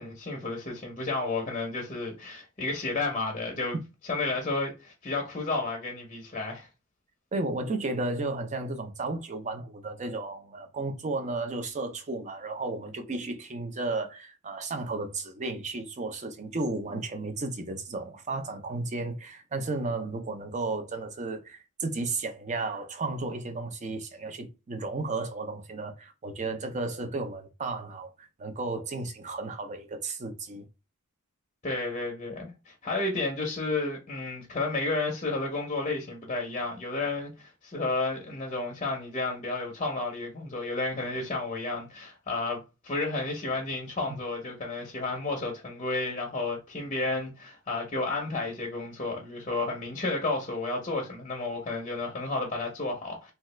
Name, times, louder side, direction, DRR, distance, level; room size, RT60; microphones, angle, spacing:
voice 1, 0.0-3.8 4.1-6.7 31.6-53.3, left 3 dB, 30° left, 0.6 m, -32 dB
voice 2, 7.3-30.6, right 3 dB, 30° right, 0.5 m, -33 dB
2.8 x 2.3 x 3.1 m
head